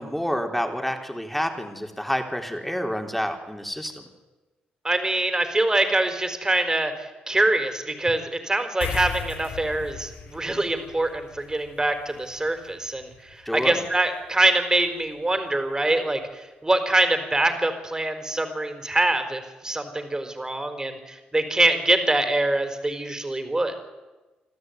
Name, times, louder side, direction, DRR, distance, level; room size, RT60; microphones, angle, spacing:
voice 1, 0.0-4.1 13.5-13.8, equal, 5° left, 4 dB, 4.0 m, -28 dB
voice 2, 4.8-23.7, right 2 dB, 20° right, 7 dB, 4.6 m, -24 dB
sound 1, 8.8-15.6, left 6 dB, 75° left, 2.8 m, -39 dB
27.5 x 13.0 x 9.6 m, 1.2 s
supercardioid pair, 55°, 3 cm